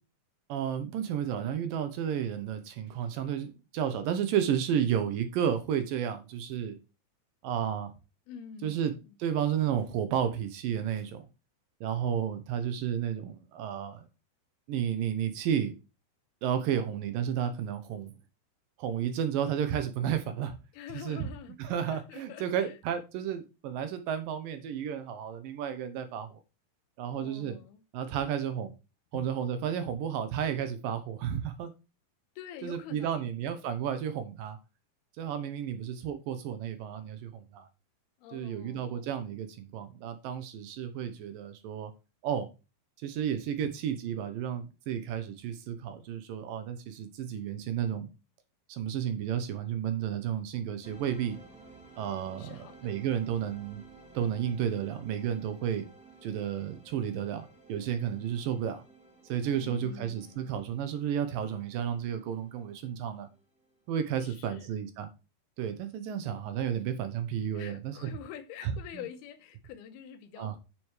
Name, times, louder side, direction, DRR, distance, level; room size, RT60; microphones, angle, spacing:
voice 1, 0.5-6.8 7.4-7.9 8.6-8.9 9.2-11.3 11.8-14.1 14.7-15.7 16.4-18.1 18.8-20.6 21.0-21.3 21.6-26.4 27.0-27.6 27.9-28.7 29.1-31.7 32.6-34.6 35.2-37.7 38.3-41.9 42.2-42.5 43.0-48.1 48.7-51.4 52.0-53.8 54.1-55.9 56.2-58.8 59.3-63.3 63.9-65.1 65.6-68.1 68.6-68.7 70.4-70.5, right 9 dB, 75° right, 2.4 m, -32 dB
voice 2, 8.3-9.1 20.7-22.8 27.1-27.8 29.1-29.2 32.4-33.3 38.2-39.1 43.6-43.7 52.4-53.0 59.5-60.5 64.2-64.8 67.5-70.6, left 8 dB, 85° left, 2.9 m, -46 dB
Second Daaaawn, 50.8-63.8, right 3 dB, ahead, 2.1 m, -55 dB
9.2 x 7.1 x 3.2 m
omnidirectional pair, 4.4 m